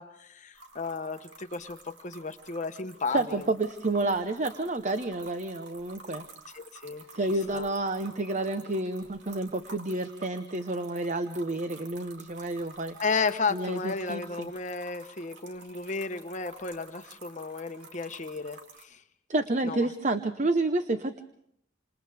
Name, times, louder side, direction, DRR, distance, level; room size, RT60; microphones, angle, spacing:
voice 1, 0.0-3.5 6.5-7.1 7.5-7.7 13.0-19.0 19.6-19.9, left 4 dB, 40° left, 8 dB, 1.0 m, -33 dB
sound 1, 0.5-18.8, right 4 dB, 90° right, 2.6 m, -51 dB
voice 2, 3.1-6.2 7.1-13.0 13.5-14.5 19.3-21.2, right 2 dB, 40° right, 9 dB, 0.9 m, -29 dB
28.0 x 27.0 x 3.5 m, 0.72 s
head